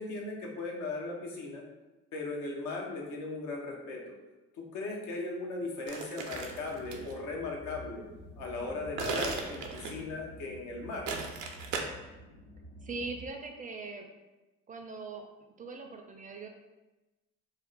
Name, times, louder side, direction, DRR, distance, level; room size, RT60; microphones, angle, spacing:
voice 1, 0.0-1.6 2.1-4.0 4.5-8.0 8.4-11.1, left 3 dB, 85° left, 0 dB, 0.7 m, -38 dB
sound 1, 5.9-7.1 9.0-10.1 11.1-11.8, right 4 dB, 80° right, 0.5 m, -36 dB
sound 2, 6.3-13.3, right 1 dB, 25° left, 0.5 m, -50 dB
voice 2, 12.8-14.1 14.7-15.2 15.6-16.5, right 3 dB, 30° right, 4 dB, 0.4 m, -40 dB
2.6 x 2.1 x 3.8 m, 1.1 s
supercardioid pair, 85°, 29 cm